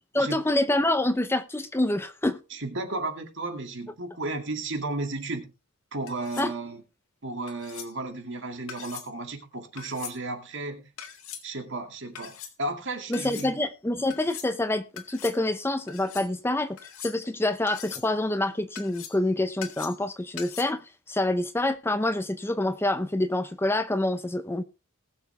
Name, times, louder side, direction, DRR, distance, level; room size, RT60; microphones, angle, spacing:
voice 1, 0.1-2.4 6.4-6.5 13.1-24.6, left 1 dB, 10° left, 0.6 m, -27 dB
voice 2, 2.5-5.5 5.9-6.8 7.2-10.9 11.4-13.6, right 2 dB, 60° right, 2.3 m, -34 dB
sound 1, 6.1-6.5 7.5-7.9 8.7-9.1 9.8-10.2 11.0-11.4 12.1-12.5 13.1-13.5 14.1-14.5 15.0-15.4 15.9-16.3 16.8-17.3 17.7-18.1 18.8-19.3 19.6-20.1 20.4-20.6, left 9 dB, 90° left, 2.0 m, -41 dB
20.0 x 7.0 x 3.3 m
head